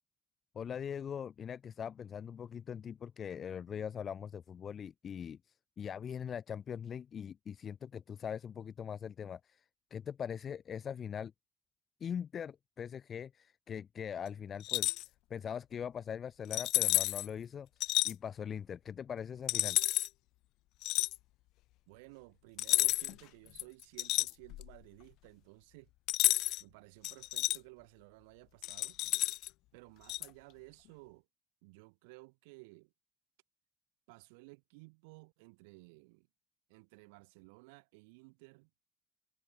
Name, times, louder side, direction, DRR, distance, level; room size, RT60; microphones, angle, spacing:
voice 1, 0.6-5.4 5.8-9.6 9.9-11.3 12.0-14.9 15.3-17.7 18.0-19.8, left 8 dB, 45° left, 1.9 m, -41 dB
sound 1, 14.6-15.1 16.5-17.3 17.8-18.1 19.5-20.1 20.8-21.2 22.6-23.2 23.6-24.8 26.1-26.6 27.0-27.6 28.6-29.5 30.1-30.3, left 18 dB, 75° left, 0.5 m, -31 dB
voice 2, 21.9-25.9 26.3-29.0 29.7-31.3 31.6-32.9 34.1-36.3 36.7-38.7, right 29 dB, 85° right, 7.0 m, -56 dB
supercardioid pair, 75°, 0 cm